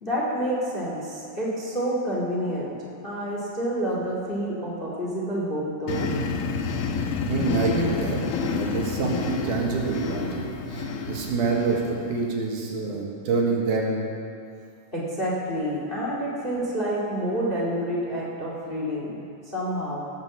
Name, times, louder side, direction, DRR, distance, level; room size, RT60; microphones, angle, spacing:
voice 1, 0.0-2.7 3.0-6.1 14.9-19.1 19.5-20.0, equal, 20° left, -5 dB, 1.7 m, -28 dB
sound 1, 5.9-12.3, left 5 dB, 90° left, 2.6 m, -29 dB
voice 2, 7.2-11.8 12.1-14.0, right 4 dB, 70° right, -1 dB, 2.9 m, -26 dB
17.5 x 6.4 x 7.1 m, 2.4 s
omnidirectional pair, 3.9 m